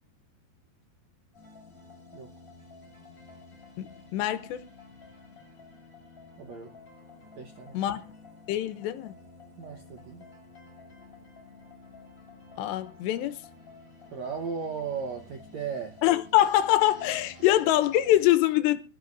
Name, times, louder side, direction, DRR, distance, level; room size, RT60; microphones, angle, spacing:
sound 1, 1.3-18.3, left 3 dB, 20° left, 7.1 m, -51 dB
voice 1, 3.8-4.6 7.7-8.1 8.5-9.1 12.6-13.4 16.0-18.8, left 14 dB, 85° left, 3.1 m, -24 dB
voice 2, 6.4-6.7 7.4-7.9 9.6-10.2 14.1-16.0, right 6 dB, 70° right, 1.7 m, -36 dB
25.0 x 13.0 x 2.6 m
omnidirectional pair, 4.9 m